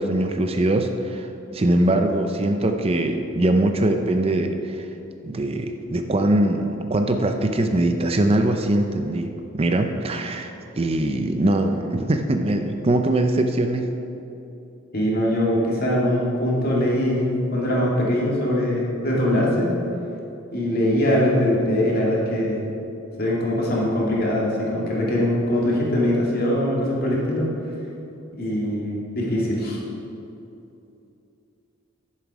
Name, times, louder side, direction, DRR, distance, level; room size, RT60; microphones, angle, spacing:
voice 1, 0.0-4.9 5.2-13.9, right 1 dB, 30° right, 6 dB, 0.5 m, -22 dB
voice 2, 14.9-19.7 20.5-22.6 23.2-27.5 28.3-29.8, left 1 dB, 45° left, -4 dB, 2.2 m, -22 dB
10.5 x 7.5 x 4.9 m, 2.8 s
head